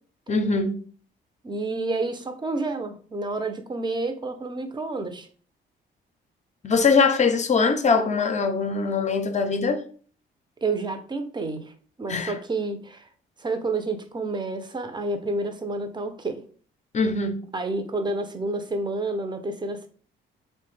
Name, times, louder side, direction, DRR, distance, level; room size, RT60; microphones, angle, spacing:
voice 1, 0.3-0.8 6.6-9.8 12.1-12.3 16.9-17.4, left 4 dB, 35° left, 0.5 m, -22 dB
voice 2, 1.4-5.3 10.6-11.7 12.0-13.1 13.4-16.4 17.5-19.9, right 3 dB, 20° right, 0.5 m, -29 dB
3.0 x 2.1 x 3.1 m
supercardioid pair, 65°, 21 cm